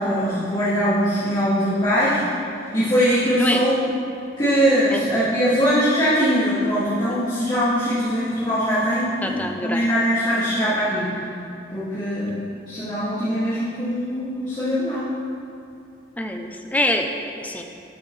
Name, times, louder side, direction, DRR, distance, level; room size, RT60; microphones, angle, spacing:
voice 1, 0.0-2.2 2.7-3.7 4.4-11.1 11.7-12.4 12.7-15.1, equal, 25° left, -12 dB, 2.0 m, -21 dB
voice 2, 9.2-9.8 16.2-17.6, left 1 dB, 10° left, 3 dB, 0.5 m, -25 dB
12.5 x 8.1 x 3.2 m, 2.7 s
head